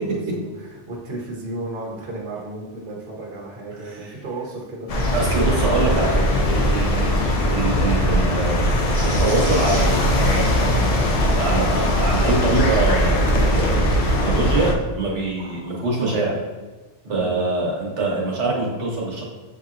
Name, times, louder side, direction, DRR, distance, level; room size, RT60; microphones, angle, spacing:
voice 1, 0.0-5.2 5.7-6.2 17.0-17.4, right 2 dB, 50° right, -3 dB, 1.0 m, -34 dB
sound 1, 4.9-14.7, equal, 65° left, 0.3 m, -20 dB
voice 2, 5.1-8.7 9.0-16.4 17.1-19.2, right 3 dB, 75° right, -3 dB, 1.2 m, -24 dB
sound 2, 8.9-14.5 15.0-16.2, right 1 dB, 15° right, 1.2 m, -40 dB
6.5 x 2.8 x 2.5 m, 1.3 s
omnidirectional pair, 1.2 m